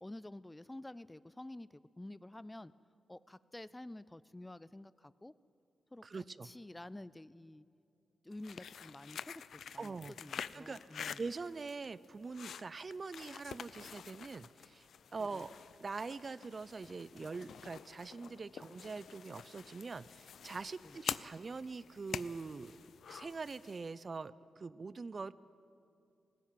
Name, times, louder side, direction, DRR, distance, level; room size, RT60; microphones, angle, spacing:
voice 1, 0.0-2.7 3.1-5.3 5.9-7.6 8.2-9.4 9.7-11.2 15.2-15.4 20.8-21.0, left 1 dB, 15° left, 18 dB, 0.4 m, -50 dB
voice 2, 6.0-6.5 9.8-10.1 10.5-15.5 15.8-22.8 23.1-25.3, right 4 dB, 40° right, 18 dB, 0.5 m, -43 dB
sound 1, 8.3-23.9, left 7 dB, 75° left, 0.5 m, -48 dB
19.0 x 15.5 x 9.1 m, 2.6 s
cardioid pair, 95°, 0 cm